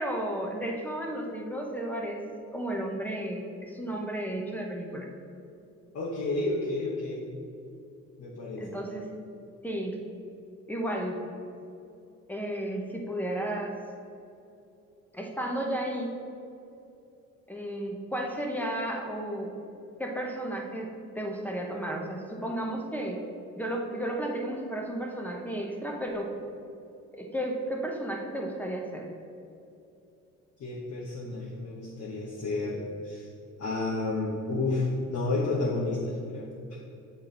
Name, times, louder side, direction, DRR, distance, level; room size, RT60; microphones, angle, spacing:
voice 1, 0.0-2.2 2.5-5.1 8.6-9.2 9.6-10.0 10.7-11.2 12.3-13.7 15.1-16.2 17.5-19.5 20.0-23.2 23.6-26.3 27.1-29.1, right 1 dB, 5° left, 0 dB, 1.0 m, -33 dB
voice 2, 5.9-7.2 8.2-8.6 30.6-33.3 33.6-36.5, left 2 dB, 55° left, -6 dB, 1.3 m, -31 dB
7.9 x 4.3 x 4.0 m, 2.7 s
cardioid pair, 90°, 30 cm